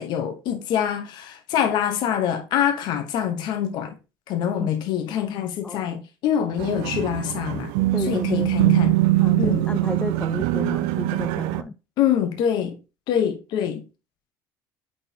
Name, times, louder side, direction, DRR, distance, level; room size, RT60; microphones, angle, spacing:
voice 1, 0.0-4.0 4.3-7.7 8.0-9.0 9.4-9.7 12.0-12.8 13.1-13.8, left 9 dB, 65° left, 1.0 m, -25 dB
sound 1, 6.6-11.6, right 17 dB, 85° right, 0.5 m, -22 dB
voice 2, 7.9-8.5 9.2-11.7, left 3 dB, 15° left, 0.4 m, -31 dB
8.8 x 4.3 x 2.8 m
cardioid pair, 120°, 8 cm